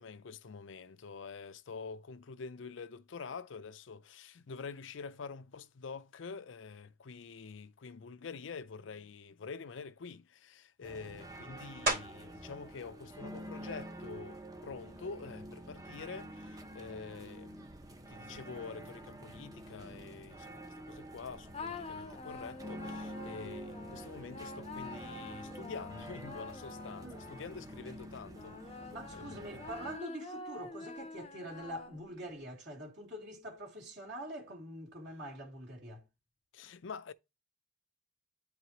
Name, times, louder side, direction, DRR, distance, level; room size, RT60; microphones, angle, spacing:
voice 1, 0.0-17.7 18.1-28.6 29.1-29.6 36.5-37.1, left 5 dB, 80° left, 0.5 m, -46 dB
sound 1, 10.8-30.0, right 1 dB, 20° right, 0.6 m, -48 dB
sound 2, 11.9-12.4 13.0-17.4 17.9-23.1 23.4-29.0, right 1 dB, 50° right, 2.6 m, -44 dB
sound 3, 21.5-27.8 28.3-32.3, left 3 dB, 30° left, 0.6 m, -47 dB
voice 2, 28.9-36.0, equal, 65° right, 2.6 m, -45 dB
10.0 x 4.7 x 2.9 m
head